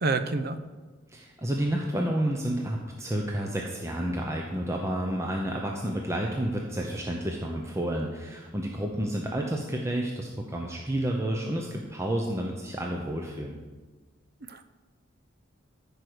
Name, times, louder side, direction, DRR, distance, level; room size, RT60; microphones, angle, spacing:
voice 1, 0.0-0.6 14.5-14.6, right 3 dB, 55° right, 10 dB, 0.7 m, -27 dB
voice 2, 1.1-13.6, right 1 dB, 15° right, 0 dB, 0.8 m, -30 dB
14.0 x 5.0 x 6.2 m, 1.3 s
head